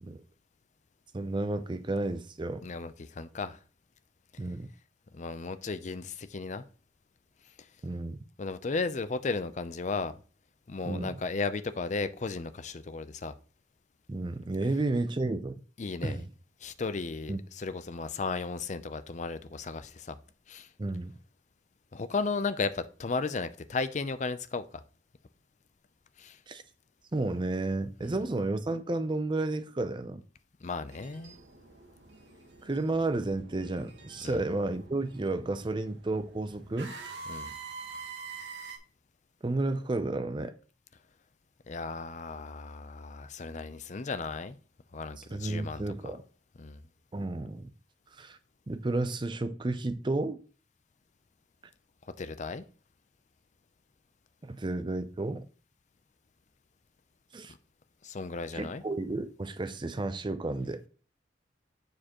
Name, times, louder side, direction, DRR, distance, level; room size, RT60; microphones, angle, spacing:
voice 1, 1.1-2.6 4.4-4.7 7.8-8.2 10.9-11.1 14.1-15.5 16.0-16.2 17.3-17.4 20.8-21.1 26.5-26.6 27.1-30.2 32.6-37.0 39.4-40.5 45.2-46.2 47.1-47.7 48.2-48.4 48.7-50.4 54.4-55.4 57.3-57.5 58.5-60.8, right 2 dB, 25° right, 0.5 m, -32 dB
voice 2, 2.6-3.6 5.1-6.6 8.4-10.2 10.7-13.4 15.8-16.3 16.6-20.2 20.5-20.7 21.9-24.8 26.2-26.4 28.0-28.2 30.6-31.4 34.2-34.4 37.3-37.5 41.7-44.6 44.9-46.1 46.6-46.8 52.2-52.6 58.0-58.8, left 4 dB, 40° left, 0.5 m, -35 dB
sound 1, 30.9-38.8, right 4 dB, 75° right, 1.4 m, -46 dB
7.3 x 6.5 x 3.0 m
head